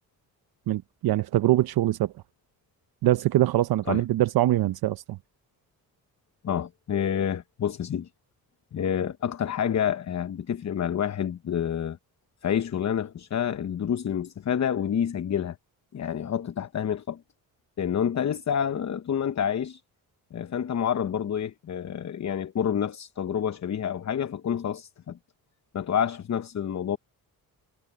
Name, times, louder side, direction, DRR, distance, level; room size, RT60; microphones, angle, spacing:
voice 1, 0.7-2.1 3.0-5.2, right 14 dB, 70° right, 0.7 m, -23 dB
voice 2, 6.4-8.1 8.7-12.0 12.4-15.6 15.9-17.2 17.8-19.8 20.3-25.2 25.7-27.0, left 8 dB, 45° left, 1.0 m, -28 dB
cardioid pair, 70°, 39 cm